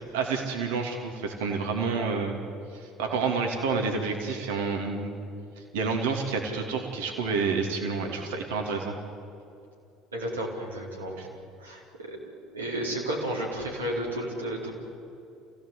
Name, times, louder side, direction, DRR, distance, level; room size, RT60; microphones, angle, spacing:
voice 1, 0.1-2.4 2.7-5.2 5.6-8.9 11.2-11.3, right 4 dB, 70° right, 3 dB, 2.9 m, -29 dB
voice 2, 10.1-11.2 11.6-11.8 12.1-12.2 12.5-14.7, right 1 dB, 85° right, -3 dB, 4.5 m, -32 dB
27.0 x 16.5 x 8.4 m, 2.6 s
figure-of-eight pair, 65°, 0 cm